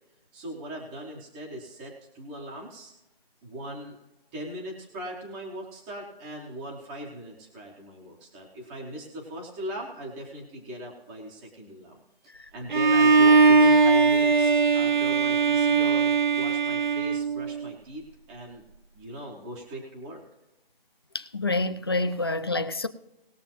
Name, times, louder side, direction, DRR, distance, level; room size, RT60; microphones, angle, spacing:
voice 1, 0.3-2.9 3.4-4.0 4.3-18.0 18.3-18.6 18.9-20.2, right 1 dB, 5° right, 0.8 m, -39 dB
Bowed string instrument, 12.7-17.7, right 4 dB, 50° right, 0.8 m, -20 dB
voice 2, 21.1-22.9, left 2 dB, 25° left, 0.5 m, -27 dB
20.0 x 6.8 x 2.9 m
figure-of-eight pair, 165°, 30 cm